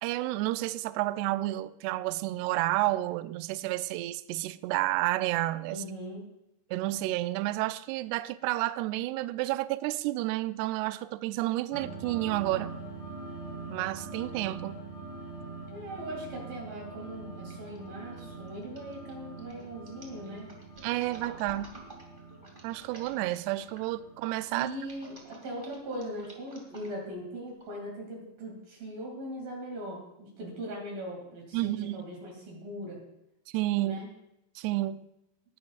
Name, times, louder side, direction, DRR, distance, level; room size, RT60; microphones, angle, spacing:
voice 1, 0.0-5.8 6.7-12.7 13.7-14.8 20.8-21.7 22.6-24.7 31.5-32.0 33.5-34.0 34.6-35.1, right 17 dB, 85° right, 13 dB, 2.4 m, -30 dB
voice 2, 5.7-6.3 15.7-20.5 24.5-33.0 33.8-34.1, right 1 dB, 55° right, -1 dB, 4.0 m, -40 dB
sound 1, 11.7-25.7, right 3 dB, 35° left, 3.8 m, -44 dB
sound 2, 17.5-17.8 18.1-23.9 24.5-27.1 27.6-27.7, right 2 dB, 25° right, 1.1 m, -51 dB
20.5 x 11.0 x 2.4 m, 0.85 s
omnidirectional pair, 5.0 m